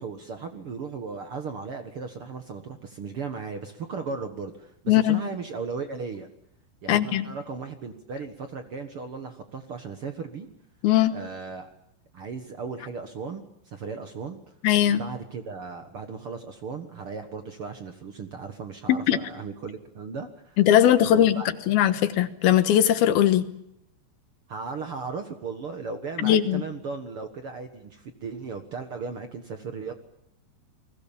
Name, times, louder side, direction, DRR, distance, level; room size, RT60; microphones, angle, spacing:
voice 1, 0.0-6.3 6.8-10.5 11.1-11.7 12.1-14.4 14.9-20.6 21.1-21.5 24.5-29.9, right 5 dB, 70° right, 6 dB, 1.3 m, -36 dB
voice 2, 4.9-5.2 6.9-7.3 10.8-11.1 14.6-15.0 18.9-19.2 20.6-23.4 26.2-26.6, left 11 dB, 70° left, 11 dB, 2.9 m, -20 dB
29.5 x 21.0 x 7.4 m, 0.77 s
omnidirectional pair, 4.9 m